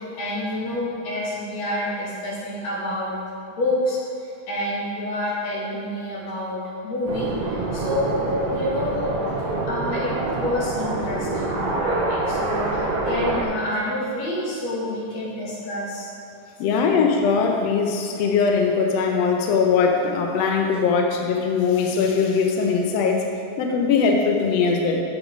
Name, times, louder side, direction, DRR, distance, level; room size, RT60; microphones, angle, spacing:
voice 1, 0.0-3.1 3.5-6.6 6.8-8.2 8.5-9.1 9.7-16.1 16.6-16.9, left 1 dB, 55° left, -6 dB, 3.0 m, -28 dB
sound 1, 7.1-13.4, right 2 dB, 65° right, 1.7 m, -26 dB
voice 2, 16.6-23.2 23.6-25.0, left 5 dB, 80° left, 1 dB, 1.4 m, -21 dB
8.2 x 7.3 x 5.2 m, 2.5 s
omnidirectional pair, 3.8 m